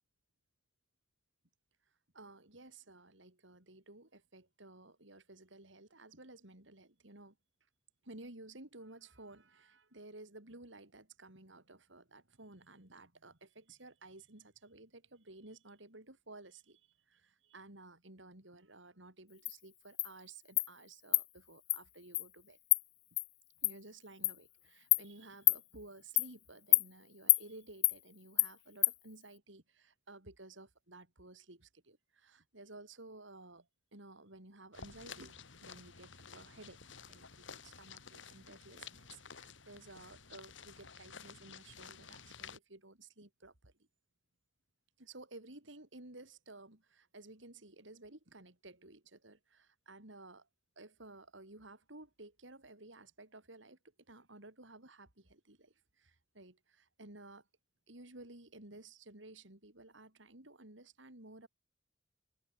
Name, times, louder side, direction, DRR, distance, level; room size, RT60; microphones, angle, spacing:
voice 1, 2.1-7.4 8.0-22.6 23.6-36.8 37.1-43.7 45.0-50.5 50.8-53.8 54.1-57.5 57.9-61.5, right 2 dB, 75° right, 4.3 m, -55 dB
Insect, 19.5-19.6 20.0-20.1 20.6-20.7 21.1-21.2 21.7-21.8 22.1-22.3 22.7-22.8 23.2-23.3 23.6-23.7 24.2-24.4 24.9-25.0 25.5-25.6 26.2-26.3 26.7-26.9 27.3-27.4 27.8-28.0 28.4-28.5 28.8-28.9, left 19 dB, 45° left, 0.4 m, -27 dB
sound 1, 34.7-42.6, left 6 dB, 75° left, 2.7 m, -52 dB
open air
head